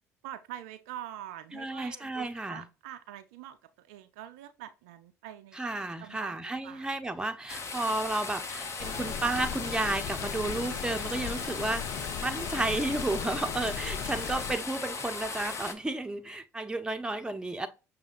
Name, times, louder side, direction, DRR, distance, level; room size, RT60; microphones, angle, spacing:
voice 1, 0.2-5.6 6.0-6.4 6.6-6.9 11.3-11.5, right 12 dB, 70° right, 0.4 m, -45 dB
voice 2, 1.5-2.6 5.5-17.7, right 2 dB, 10° right, 0.7 m, -32 dB
sound 1, 7.5-15.7, left 4 dB, 35° left, 0.8 m, -38 dB
sound 2, 8.8-14.5, left 8 dB, 60° left, 0.4 m, -37 dB
6.3 x 2.7 x 2.4 m
figure-of-eight pair, 55°, 8 cm